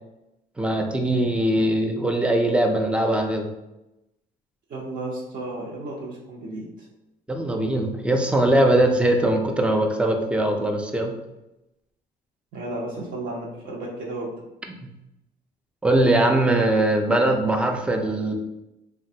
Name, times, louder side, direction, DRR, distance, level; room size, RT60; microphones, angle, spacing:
voice 1, 0.6-3.5 7.3-11.1 15.8-18.3, right 1 dB, 5° right, 3 dB, 0.4 m, -21 dB
voice 2, 4.7-6.9 12.5-14.3, right 2 dB, 55° right, -4 dB, 0.7 m, -33 dB
3.1 x 2.2 x 2.7 m, 0.94 s
cardioid pair, 110°, 17 cm